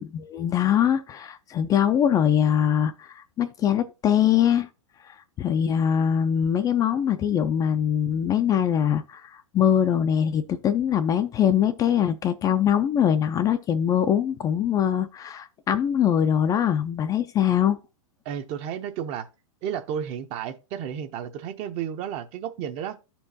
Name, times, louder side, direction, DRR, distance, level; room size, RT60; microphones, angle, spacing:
voice 1, 0.0-4.7 5.0-17.8, left 9 dB, 20° left, 0.4 m, -23 dB
voice 2, 18.2-19.3 19.6-23.0, right 9 dB, 40° right, 0.8 m, -32 dB
12.5 x 4.5 x 2.7 m
hypercardioid pair, 120°, 17 cm